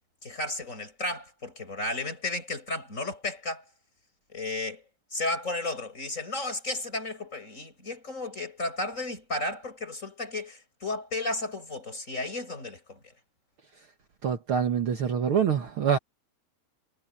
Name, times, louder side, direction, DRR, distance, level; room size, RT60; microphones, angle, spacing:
voice 1, 0.2-3.6 4.3-4.8 5.1-13.0, left 2 dB, 15° left, 7.2 m, -33 dB
voice 2, 14.2-16.0, right 7 dB, 80° right, 1.2 m, -25 dB
omnidirectional pair, 4.9 m